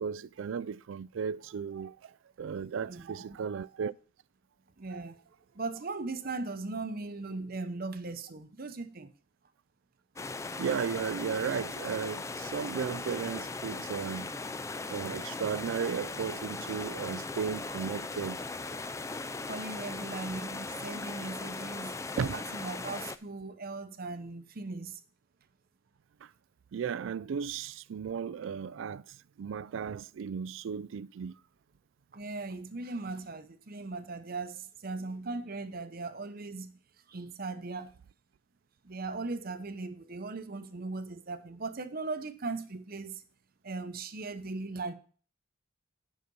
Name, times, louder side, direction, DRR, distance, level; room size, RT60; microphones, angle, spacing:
voice 1, 0.0-2.1 2.4-3.9 4.9-5.0 10.6-14.3 14.9-18.5 22.2-22.4 26.2-26.3 26.7-31.3, right 6 dB, 70° right, 0.3 m, -35 dB
voice 2, 2.9-3.4 4.8-5.2 5.5-9.1 19.5-25.0 32.1-36.8 37.1-37.9 38.8-43.2 43.6-44.9, right 3 dB, 45° right, 0.8 m, -38 dB
sound 1, 10.2-23.2, left 3 dB, 15° left, 0.3 m, -38 dB
9.5 x 5.9 x 5.3 m
head